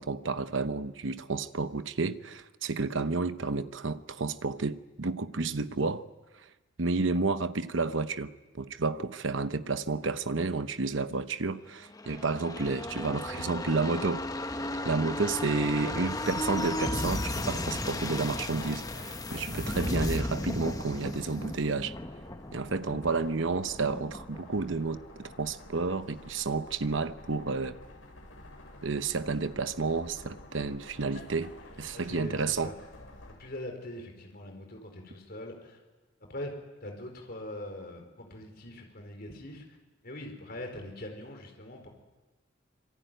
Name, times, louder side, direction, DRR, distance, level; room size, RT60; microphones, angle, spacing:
voice 1, 0.0-6.0 6.8-14.2 14.8-21.9 22.5-27.8 28.8-31.5 31.8-32.7, right 3 dB, 70° right, 0.9 m, -31 dB
sound 1, 11.9-25.3 25.7-25.8, left 1 dB, 20° left, 0.9 m, -35 dB
sound 2, 16.2-33.3, left 1 dB, 75° left, 6.9 m, -50 dB
voice 2, 31.9-32.7 33.4-35.8 36.3-36.5 36.8-39.6 40.0-41.9, left 1 dB, 50° left, 4.7 m, -42 dB
26.5 x 23.5 x 9.2 m
head